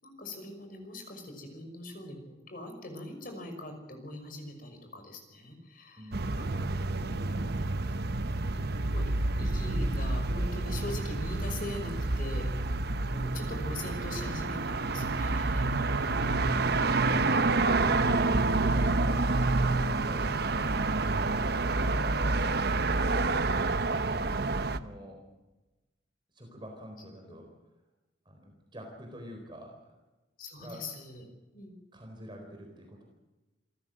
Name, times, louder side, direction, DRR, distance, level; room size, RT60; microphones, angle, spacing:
voice 1, 0.0-6.7 7.0-7.6 8.4-9.0 9.4-12.5 13.1-16.1 19.6-19.8 22.2-22.4 30.4-31.2 31.5-31.7, left 1 dB, 50° left, 5 dB, 5.8 m, -42 dB
voice 2, 6.0-6.7 18.7-20.8 23.8-25.2 26.3-27.5 28.2-29.9 30.6-30.9 31.9-33.0, equal, 25° right, 2 dB, 4.2 m, -47 dB
sound 1, 6.1-24.8, right 3 dB, 60° right, 1.0 m, -28 dB
27.5 x 15.0 x 7.7 m, 1.1 s
head